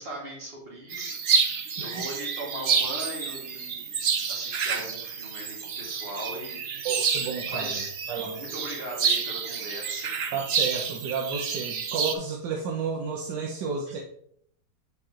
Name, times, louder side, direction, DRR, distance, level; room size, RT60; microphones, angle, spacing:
voice 1, 0.0-4.0 4.3-6.9 7.5-7.9 8.4-10.3, right 1 dB, 35° right, -3 dB, 2.4 m, -39 dB
sound 1, 0.9-12.1, right 6 dB, 55° right, 0.7 m, -29 dB
voice 2, 6.8-7.8 8.1-8.4 10.3-14.0, right 5 dB, 80° right, 1 dB, 1.4 m, -31 dB
7.8 x 4.4 x 3.8 m, 0.65 s
omnidirectional pair, 1.8 m